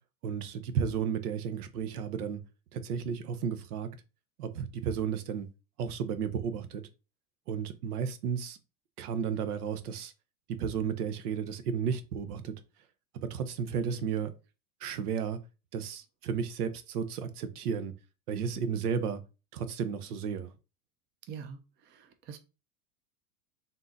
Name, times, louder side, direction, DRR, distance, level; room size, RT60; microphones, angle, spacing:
voice 1, 0.2-2.4 2.7-3.9 4.4-5.5 5.8-6.8 7.5-8.6 9.0-10.1 10.6-12.6 13.1-14.3 14.8-15.4 15.7-17.9 18.3-19.2 19.5-20.5, right 7 dB, 80° right, 0.8 m, -33 dB
voice 2, 21.3-22.4, right 7 dB, 25° right, 0.4 m, -45 dB
3.8 x 2.7 x 3.8 m
supercardioid pair, 120°, 44 cm